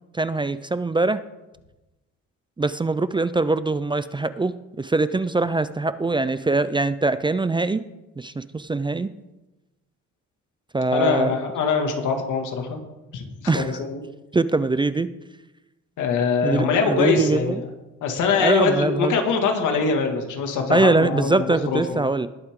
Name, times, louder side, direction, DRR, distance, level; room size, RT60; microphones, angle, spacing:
voice 1, 0.1-1.2 2.6-7.8 8.2-9.1 10.7-11.4 13.5-13.7 14.3-15.1 16.4-17.6 18.3-19.2 20.7-22.3, right 3 dB, 15° right, 14 dB, 0.5 m, -22 dB
voice 2, 10.9-12.8 13.1-14.0 16.0-17.7 18.0-22.0, left 5 dB, 80° left, 4 dB, 2.2 m, -23 dB
20.0 x 7.9 x 3.7 m, 1.0 s
cardioid pair, 90°, 30 cm